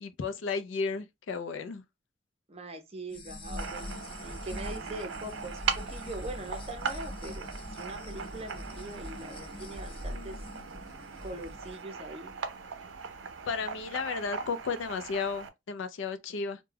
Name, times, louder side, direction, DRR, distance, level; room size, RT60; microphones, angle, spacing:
voice 1, 0.0-1.8 10.1-10.4 13.5-16.6, left 5 dB, 85° left, 0.4 m, -34 dB
voice 2, 2.5-10.4 11.2-12.3, right 2 dB, 35° right, 0.6 m, -42 dB
sound 1, 3.1-11.7, left 1 dB, 30° left, 0.5 m, -43 dB
sound 2, 3.6-15.5, right 6 dB, 85° right, 0.5 m, -39 dB
2.2 x 2.1 x 3.3 m
head